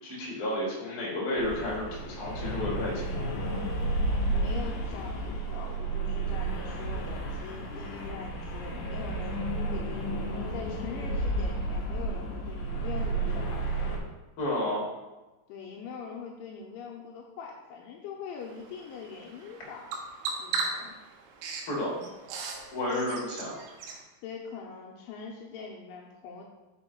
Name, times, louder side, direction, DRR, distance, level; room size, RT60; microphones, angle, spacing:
voice 1, 0.0-3.2 14.4-14.8 21.7-22.0 22.7-23.5, left 1 dB, 50° left, -4 dB, 1.7 m, -31 dB
sound 1, 1.4-14.0, right 2 dB, 65° left, 2.6 m, -32 dB
voice 2, 4.3-9.4 9.7-13.6 15.5-19.9 20.4-20.9 21.9-22.1 22.9-23.2 24.2-26.4, left 5 dB, 80° left, -1 dB, 2.9 m, -42 dB
Bird vocalization bird call bird song, 18.4-24.0, right 4 dB, 75° right, 2.9 m, -38 dB
6.3 x 5.3 x 4.4 m, 1.1 s
omnidirectional pair, 5.8 m